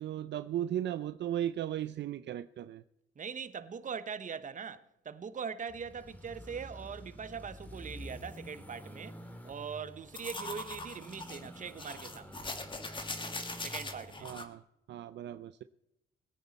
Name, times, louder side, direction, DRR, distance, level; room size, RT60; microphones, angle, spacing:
voice 1, 0.0-2.8 14.2-14.6 14.9-15.6, right 11 dB, 65° right, 0.5 m, -36 dB
voice 2, 3.2-9.2 9.4-12.4 13.6-14.3, right 6 dB, 40° right, 1.0 m, -41 dB
sound 1, 5.7-14.4, equal, 10° left, 2.3 m, -49 dB
sound 2, 10.1-14.4, left 2 dB, 25° left, 2.0 m, -41 dB
21.0 x 9.4 x 4.2 m
cardioid pair, 90°, 20 cm